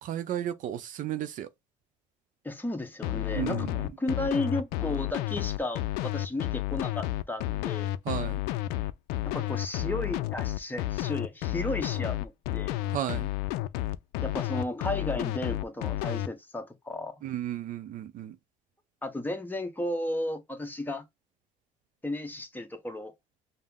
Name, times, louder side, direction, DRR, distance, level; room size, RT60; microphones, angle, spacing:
voice 1, 0.0-1.5 3.3-3.8 8.1-8.4 12.9-13.3 17.2-18.4, right 11 dB, 55° right, 0.5 m, -33 dB
voice 2, 2.4-7.9 9.2-12.8 14.2-17.1 19.0-21.0 22.0-23.1, left 1 dB, 10° left, 0.9 m, -34 dB
sound 1, 3.0-16.3, left 15 dB, 80° left, 0.4 m, -31 dB
5.4 x 2.0 x 3.5 m
supercardioid pair, 90°, 16 cm